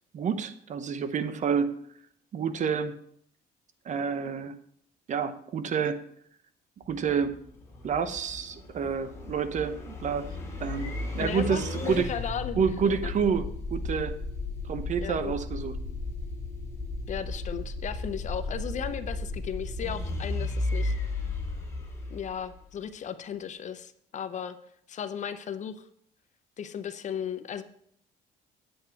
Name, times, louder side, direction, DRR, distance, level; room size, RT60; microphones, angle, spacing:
voice 1, 0.1-1.7 2.3-3.0 3.8-4.6 5.1-6.0 6.9-7.4 7.8-10.3 10.6-12.1 12.6-14.2 14.6-15.8, right 6 dB, 45° right, 12 dB, 0.8 m, -29 dB
sound 1, 6.8-22.8, left 2 dB, 15° left, 2.5 m, -35 dB
voice 2, 11.2-12.7 13.0-13.1 15.0-15.3 17.1-20.9 22.1-24.6 24.9-25.9 26.6-27.6, left 8 dB, 45° left, 11 dB, 0.7 m, -35 dB
8.9 x 7.9 x 4.5 m, 0.68 s
cardioid pair, 110°, 17 cm